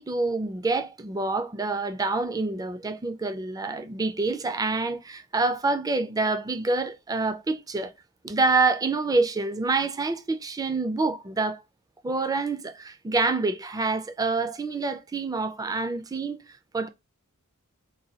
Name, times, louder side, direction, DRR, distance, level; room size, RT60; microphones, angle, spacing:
voice 1, 0.0-7.9 8.2-11.6 12.0-16.4 16.7-16.9, right 3 dB, 15° right, 0.4 m, -27 dB
3.9 x 2.2 x 4.0 m
head